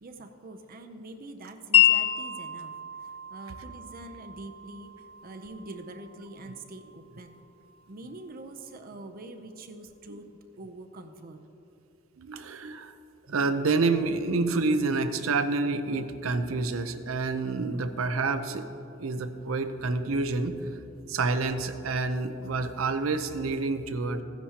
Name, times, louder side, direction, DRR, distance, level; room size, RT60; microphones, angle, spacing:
voice 1, 0.0-2.7 3.3-4.9 5.2-7.4 7.9-10.3 10.6-11.4, right 2 dB, 45° right, 6 dB, 0.6 m, -44 dB
Wind chime, 1.7-7.8, left 11 dB, 30° left, 0.5 m, -29 dB
voice 2, 12.2-12.9 13.3-18.7 19.0-20.6 21.1-24.2, right 3 dB, 85° right, 9 dB, 0.7 m, -28 dB
15.5 x 10.0 x 2.9 m, 2.9 s
head